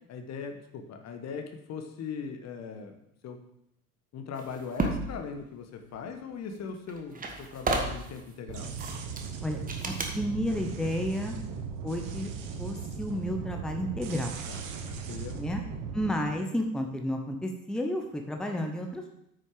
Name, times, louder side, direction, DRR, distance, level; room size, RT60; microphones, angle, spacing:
voice 1, 0.1-3.0 3.2-3.4 4.1-8.7 14.5-15.4, left 5 dB, 35° left, 6 dB, 1.3 m, -40 dB
sound 1, 4.4-5.1 6.6-6.7 6.9-8.2 8.8-9.3 9.7-10.2, right 3 dB, 20° right, 1.4 m, -32 dB
sound 2, 8.5-16.1, right 5 dB, 45° right, 1.3 m, -38 dB
voice 2, 9.8-11.3 11.8-12.3 12.6-14.4 15.3-15.6 15.9-19.1, equal, ahead, 3 dB, 1.0 m, -31 dB
9.0 x 6.4 x 5.0 m, 0.78 s
figure-of-eight pair, 70°, 45 cm